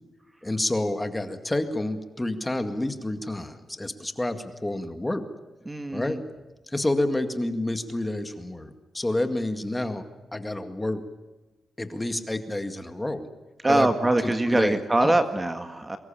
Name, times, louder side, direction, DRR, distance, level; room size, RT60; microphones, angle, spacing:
voice 1, 0.4-5.3 5.9-6.2 6.7-10.0 10.3-11.0 11.8-13.3 13.7-13.9 14.2-15.2, left 1 dB, 15° left, 8 dB, 2.1 m, -29 dB
voice 2, 5.7-6.2 13.6-16.0, right 2 dB, 20° right, 8 dB, 1.8 m, -23 dB
24.0 x 21.0 x 8.8 m, 1.2 s
cardioid pair, 100°, 0 cm